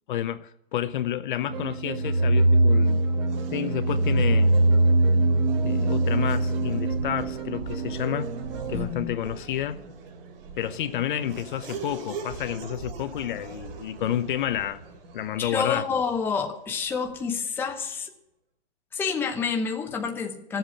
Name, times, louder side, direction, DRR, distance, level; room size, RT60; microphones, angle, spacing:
voice 1, 0.1-3.0 3.5-4.5 5.6-8.3 8.7-9.8 10.6-14.8 15.1-15.9, left 11 dB, 55° left, 0.8 m, -30 dB
sound 1, 1.5-8.8, right 2 dB, 80° right, 3.2 m, -23 dB
Race car auto racing / Accelerating revving vroom, 1.8-17.4, right 4 dB, 65° right, 3.2 m, -42 dB
voice 2, 8.7-9.1 15.4-18.1 18.9-20.6, left 5 dB, 5° left, 0.9 m, -28 dB
14.5 x 8.0 x 8.3 m
hypercardioid pair, 170°, 31 cm